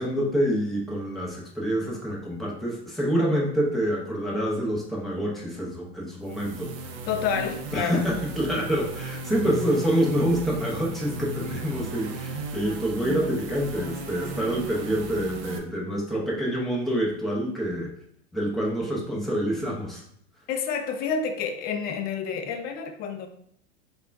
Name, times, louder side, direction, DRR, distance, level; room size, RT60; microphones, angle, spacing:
voice 1, 0.0-6.7 7.7-17.9 18.3-20.0, equal, ahead, -4 dB, 0.7 m, -27 dB
sound 1, 6.2-15.6, right 3 dB, 40° right, 0.6 m, -36 dB
voice 2, 7.1-8.0 8.5-8.7 20.5-23.3, left 6 dB, 30° left, 5 dB, 0.4 m, -29 dB
3.5 x 2.3 x 3.4 m, 0.66 s
hypercardioid pair, 120°, 34 cm